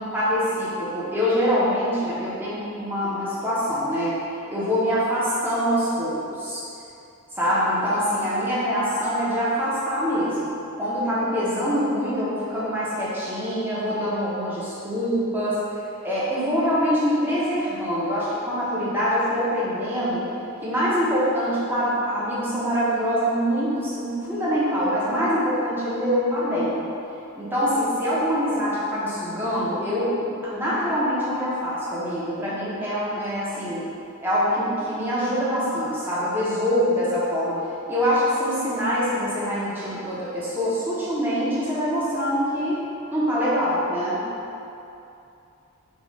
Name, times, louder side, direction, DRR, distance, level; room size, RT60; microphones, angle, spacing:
voice 1, 0.0-4.1 4.5-6.6 7.3-10.5 10.8-15.6 16.0-20.2 20.6-26.8 27.4-30.1 30.5-33.8 34.2-37.6 37.9-42.8 43.1-44.2, equal, 10° right, -10 dB, 0.9 m, -24 dB
4.4 x 2.5 x 4.6 m, 2.7 s
head